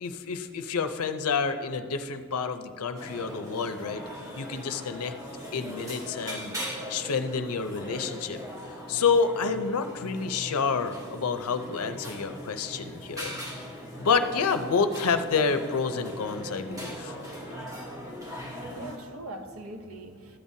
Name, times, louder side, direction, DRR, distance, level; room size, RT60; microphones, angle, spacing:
voice 1, 0.0-4.0 4.4-5.1 5.5-6.6 6.9-8.4 8.9-13.4 14.0-17.1 17.5-17.6, left 5 dB, 80° left, 0.6 m, -28 dB
sound 1, 3.0-19.0, equal, 15° right, 1.2 m, -40 dB
voice 2, 18.5-20.4, right 1 dB, 65° right, 0.7 m, -42 dB
13.0 x 8.7 x 2.7 m
head